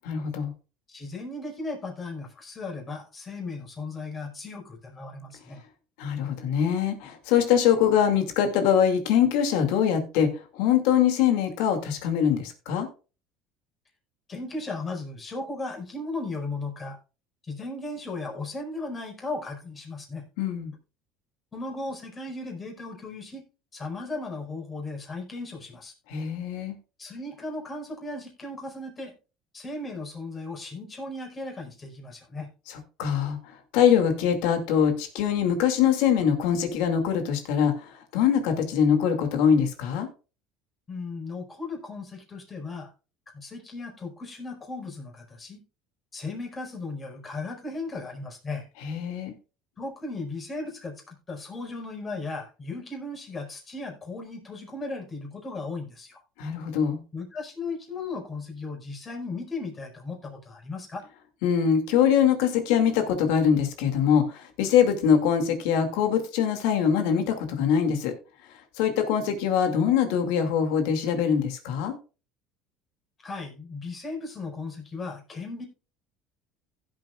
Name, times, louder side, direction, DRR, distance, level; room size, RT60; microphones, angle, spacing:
voice 1, 0.0-0.5 6.0-12.9 20.4-20.7 26.1-26.8 32.7-33.4 33.7-40.1 48.8-49.3 56.4-57.0 61.4-68.1 68.8-72.0, left 8 dB, 75° left, 7 dB, 2.4 m, -23 dB
voice 2, 0.9-5.6 14.3-17.0 17.4-20.2 21.5-23.4 23.7-25.9 27.0-29.1 29.5-32.5 40.9-42.9 43.3-45.6 46.1-48.7 49.8-56.2 57.1-61.0 73.2-75.7, left 3 dB, 25° left, 1 dB, 4.9 m, -36 dB
16.0 x 7.8 x 2.4 m, 0.33 s
supercardioid pair, 115°, 0 cm